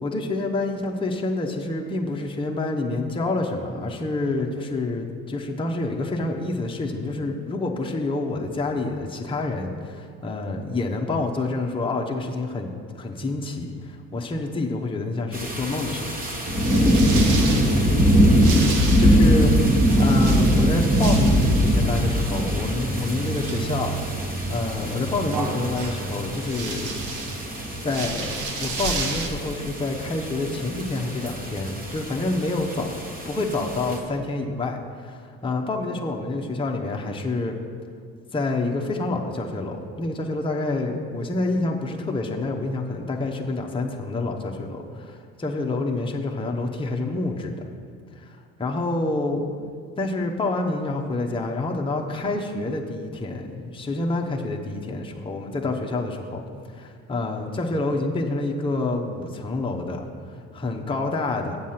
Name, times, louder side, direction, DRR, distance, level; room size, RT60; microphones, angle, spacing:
voice 1, 0.0-12.7 12.9-16.2 19.0-19.5 20.0-24.0 24.5-27.1 27.8-32.9 33.2-37.6 38.3-47.6 48.1-49.5 50.0-56.4 56.7-61.6, left 2 dB, 15° left, 0 dB, 0.9 m, -28 dB
sound 1, 15.3-34.0, equal, 25° right, 1.6 m, -22 dB
sound 2, 16.6-29.3, right 3 dB, 60° right, 1.3 m, -33 dB
7.6 x 7.4 x 5.7 m, 2.1 s
supercardioid pair, 80°, 34 cm